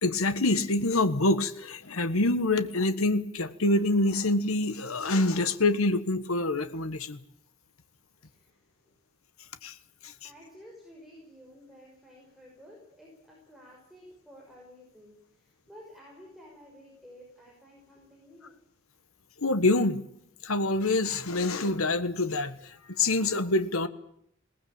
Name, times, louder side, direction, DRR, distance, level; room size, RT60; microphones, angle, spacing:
voice 1, 0.0-7.2 9.6-9.7 10.0-10.3 19.4-20.0 20.4-22.5 22.9-23.9, left 2 dB, 85° left, 11 dB, 1.5 m, -26 dB
voice 2, 8.2-8.7 10.2-18.5, equal, ahead, -2 dB, 6.1 m, -52 dB
21.5 x 19.0 x 8.8 m, 0.70 s
head